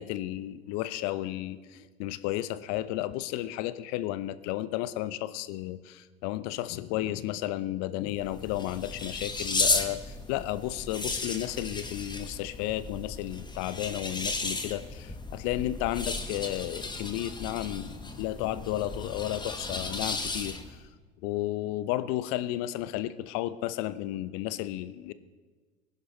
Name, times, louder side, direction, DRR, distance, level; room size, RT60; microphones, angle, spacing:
voice 1, 0.0-20.8 21.2-25.1, left 14 dB, 50° left, 14 dB, 0.9 m, -33 dB
sound 1, 8.1-20.8, left 3 dB, 15° left, 1.6 m, -34 dB
24.0 x 11.0 x 4.0 m, 1.4 s
figure-of-eight pair, 75°, 33 cm